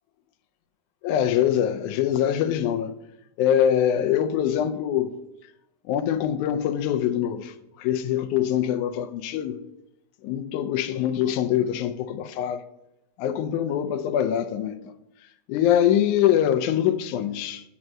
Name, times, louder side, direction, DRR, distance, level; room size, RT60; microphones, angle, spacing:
voice 1, 1.0-2.9 3.4-5.1 5.9-9.6 10.2-12.6 13.2-14.8 15.5-17.6, left 10 dB, 85° left, 2.2 m, -23 dB
7.6 x 5.5 x 6.0 m
omnidirectional pair, 3.4 m